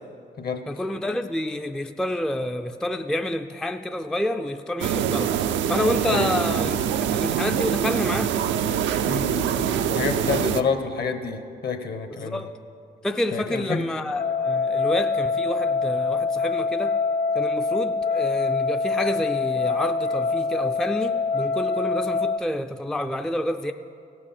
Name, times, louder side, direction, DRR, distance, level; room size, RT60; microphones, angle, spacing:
voice 1, 0.7-5.4 5.7-8.4 12.1-12.5 13.0-17.0 17.3-23.7, left 1 dB, 5° left, 7 dB, 0.4 m, -28 dB
sound 1, 4.8-10.6, right 9 dB, 80° right, 0.5 m, -24 dB
voice 2, 9.1-12.4 13.3-13.8, left 5 dB, 55° left, 8 dB, 1.1 m, -28 dB
sound 2, 14.2-22.4, left 4 dB, 75° left, 0.7 m, -25 dB
16.5 x 6.2 x 5.9 m, 2.5 s
cardioid pair, 70°, 19 cm